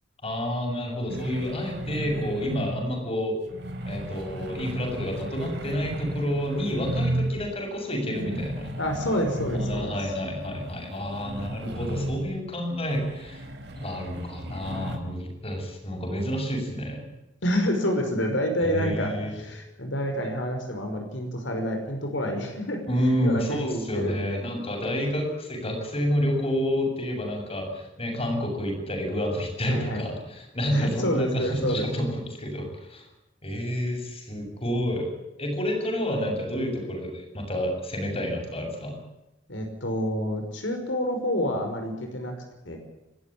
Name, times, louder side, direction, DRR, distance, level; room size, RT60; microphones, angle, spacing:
voice 1, 0.2-3.4 3.9-8.7 9.5-13.4 13.8-17.1 18.6-19.4 22.9-33.0 33.4-35.1 35.4-39.0, equal, 30° left, 2 dB, 7.5 m, -29 dB
sound 1, 1.1-3.0 3.4-7.5 7.9-12.5 12.9-15.0, right 1 dB, 65° right, 4.7 m, -34 dB
voice 2, 8.8-9.9 17.4-22.8 23.2-24.5 29.6-30.1 30.7-32.0 39.5-42.3 42.7-42.8, equal, 80° left, 4 dB, 5.5 m, -28 dB
29.5 x 13.0 x 8.8 m, 0.97 s
head